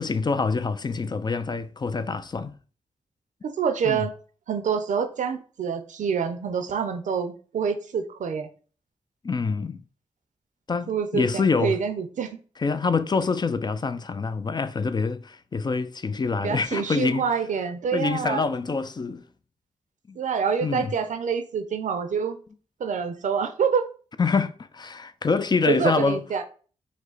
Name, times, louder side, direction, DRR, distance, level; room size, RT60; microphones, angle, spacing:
voice 1, 0.0-2.5 3.8-4.1 9.2-9.8 10.7-11.8 12.6-17.3 17.9-19.3 20.1-20.2 20.6-20.9 24.2-26.2, left 4 dB, 35° left, 0.4 m, -26 dB
voice 2, 3.4-4.1 4.5-8.5 10.9-12.4 16.4-18.4 20.2-22.4 22.8-23.9 25.7-26.4, right 6 dB, 75° right, 0.6 m, -26 dB
5.0 x 2.1 x 3.9 m
cardioid pair, 60°, 13 cm